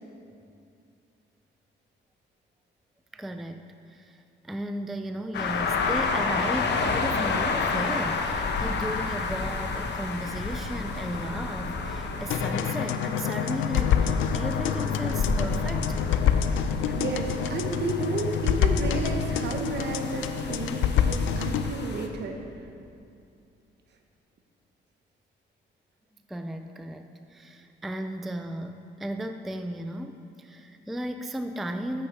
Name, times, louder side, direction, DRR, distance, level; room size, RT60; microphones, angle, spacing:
voice 1, 3.1-16.0 16.8-17.0 26.3-32.1, right 1 dB, ahead, 7 dB, 0.3 m, -35 dB
sound 1, 5.3-22.1, left 4 dB, 60° left, 0.8 m, -31 dB
sound 2, 12.3-21.7, left 8 dB, 80° left, 0.4 m, -27 dB
voice 2, 17.0-22.4, right 3 dB, 60° right, 4 dB, 1.1 m, -32 dB
8.0 x 6.4 x 4.8 m, 2.5 s
cardioid pair, 90°, 20 cm